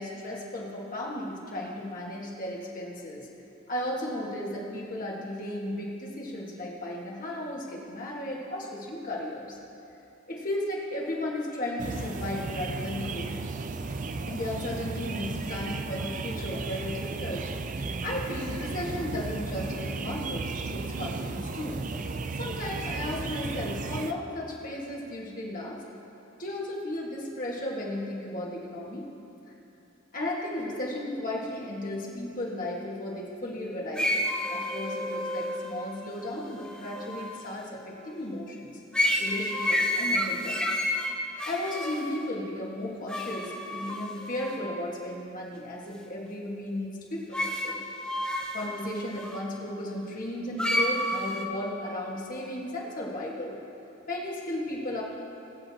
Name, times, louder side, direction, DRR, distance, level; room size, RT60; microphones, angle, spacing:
voice 1, 0.0-3.3 3.7-9.6 10.3-13.3 14.3-17.4 18.0-21.8 22.4-25.8 26.4-29.1 30.1-34.2 34.5-38.7 39.2-40.6 41.5-47.8 48.2-53.6 54.1-55.0, left 1 dB, 40° left, -3 dB, 1.6 m, -35 dB
sound 1, 11.8-24.1, right 3 dB, 40° right, 0.4 m, -34 dB
sound 2, 34.0-37.6 38.9-42.3 43.1-44.6 47.3-49.4 50.6-51.4, left 1 dB, 5° left, 0.7 m, -30 dB
21.5 x 8.1 x 2.8 m, 2.7 s
head